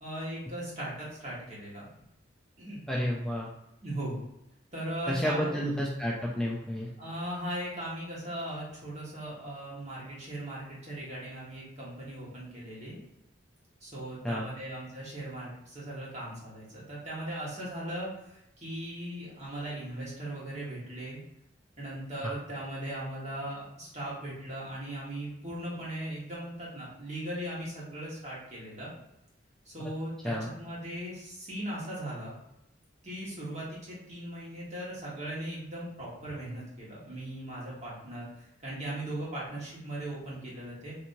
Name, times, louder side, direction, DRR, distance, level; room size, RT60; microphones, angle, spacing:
voice 1, 0.0-1.9 2.6-2.9 3.8-4.2 4.7-5.6 7.0-13.0 13.8-21.2 21.8-28.9 29.6-32.3 33.0-41.0, right 1 dB, 40° right, -6 dB, 1.4 m, -38 dB
voice 2, 2.9-3.5 5.1-6.9 14.2-14.5 22.2-22.3 30.2-30.5, equal, 5° left, -4 dB, 0.3 m, -30 dB
3.4 x 2.9 x 2.6 m, 0.85 s
head